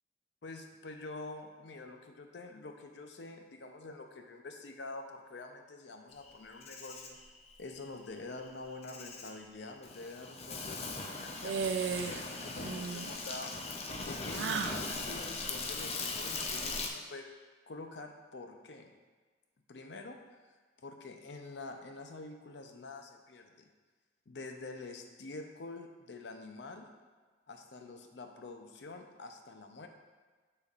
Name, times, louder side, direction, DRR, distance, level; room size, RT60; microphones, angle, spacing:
voice 1, 0.4-7.2 7.6-13.6 14.0-17.3 17.7-18.9 19.7-20.2 20.8-23.7 24.3-26.9 27.5-29.9, left 3 dB, 75° left, 5 dB, 0.6 m, -46 dB
Insect, 6.2-16.9, left 3 dB, 35° left, 0.5 m, -40 dB
sound 1, 11.4-12.3 12.6-13.1 14.3-14.8, right 6 dB, 85° right, 0.4 m, -35 dB
7.1 x 6.6 x 2.5 m, 1.4 s
head